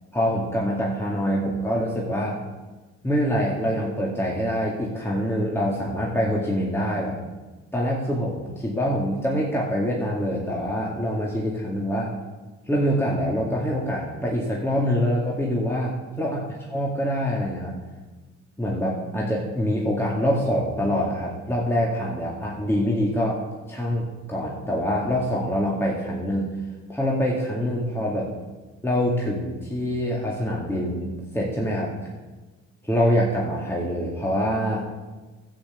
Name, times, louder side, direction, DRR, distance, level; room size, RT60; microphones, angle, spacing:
voice 1, 0.1-2.4 3.0-7.2 7.7-12.1 12.7-16.4 16.7-17.7 18.6-23.4 23.7-26.5 26.9-28.3 28.8-31.9 32.8-34.9, equal, 10° left, -3 dB, 2.2 m, -25 dB
12.0 x 7.3 x 7.1 m, 1.2 s
cardioid pair, 90°, 30 cm